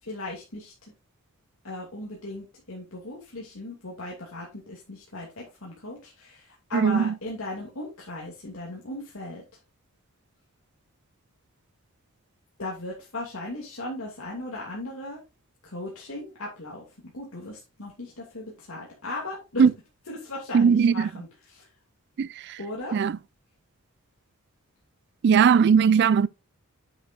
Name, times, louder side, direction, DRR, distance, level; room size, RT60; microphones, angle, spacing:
voice 1, 0.0-0.7 1.6-9.4 12.6-15.2 15.6-16.8 17.1-19.6 20.0-21.7 22.6-23.0, left 2 dB, 65° left, 2.7 m, -37 dB
voice 2, 6.7-7.1 19.6-19.7 20.5-21.1 22.2-22.6 22.9-23.2 25.2-26.3, right 6 dB, 50° right, 0.3 m, -19 dB
9.0 x 7.9 x 2.6 m
head